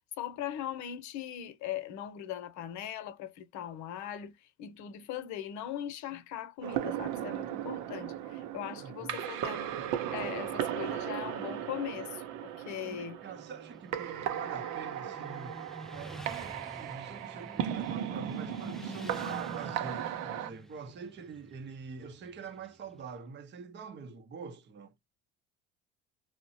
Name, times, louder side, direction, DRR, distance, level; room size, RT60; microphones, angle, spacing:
voice 1, 0.2-9.7 10.1-13.2, left 10 dB, 55° left, 0.8 m, -40 dB
sound 1, 6.6-20.5, right 10 dB, 65° right, 0.7 m, -36 dB
voice 2, 8.8-9.2 12.8-15.6 15.9-24.9, right 5 dB, 30° right, 0.7 m, -45 dB
Motorcycle, 13.2-23.0, right 1 dB, ahead, 0.4 m, -48 dB
3.0 x 2.1 x 2.7 m
hypercardioid pair, 65°, 34 cm